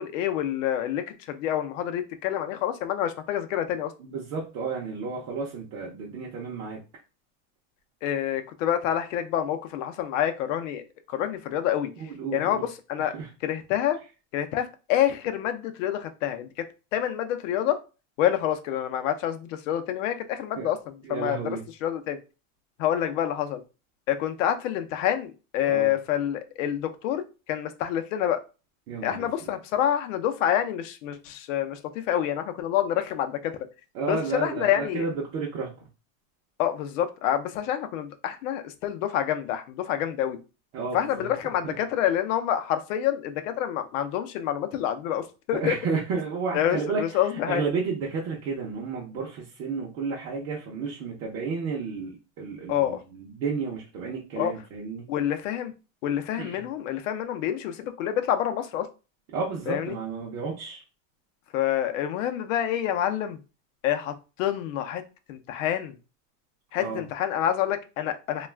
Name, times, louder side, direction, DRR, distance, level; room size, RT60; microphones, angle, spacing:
voice 1, 0.0-3.9 8.0-11.9 12.3-13.1 13.4-14.0 14.3-16.5 16.9-17.8 18.2-22.2 22.8-23.6 24.1-27.2 27.5-28.4 29.0-33.5 34.1-35.0 36.6-40.4 40.9-45.7 46.5-47.6 52.7-53.0 54.4-54.5 55.1-55.7 56.0-58.9 59.7-60.0 61.5-63.4 63.8-65.0 65.3-65.9 66.7-68.5, left 10 dB, 70° left, 8 dB, 0.6 m, -27 dB
voice 2, 4.0-6.8 12.0-12.6 13.1-13.3 20.6-20.7 21.0-21.6 25.7-25.9 28.9-29.5 33.9-35.9 40.7-41.3 41.6-41.8 45.5-47.2 47.5-55.1 56.4-56.7 59.3-60.8 66.8-67.0, right 4 dB, 35° right, -4 dB, 0.6 m, -32 dB
2.3 x 2.3 x 3.2 m, 0.31 s
supercardioid pair, 165°, 40 cm